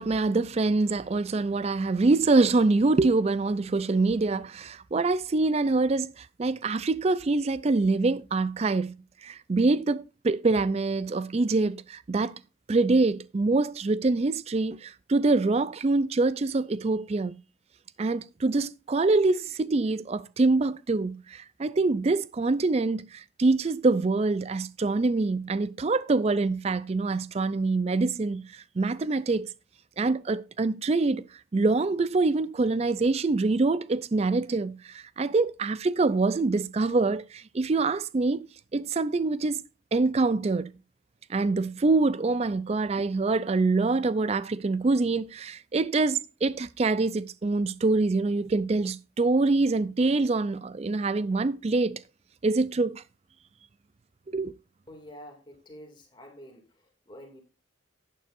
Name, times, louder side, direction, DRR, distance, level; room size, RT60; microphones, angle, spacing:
voice 1, 0.0-8.9 9.2-12.3 12.7-17.3 18.0-29.5 30.0-31.2 31.5-38.5 38.7-39.6 39.9-40.7 41.3-52.0 52.4-53.0 54.3-54.6, right 3 dB, 30° right, 0.4 m, -25 dB
voice 2, 54.9-57.4, equal, 25° left, 2.3 m, -48 dB
11.0 x 9.1 x 2.5 m
head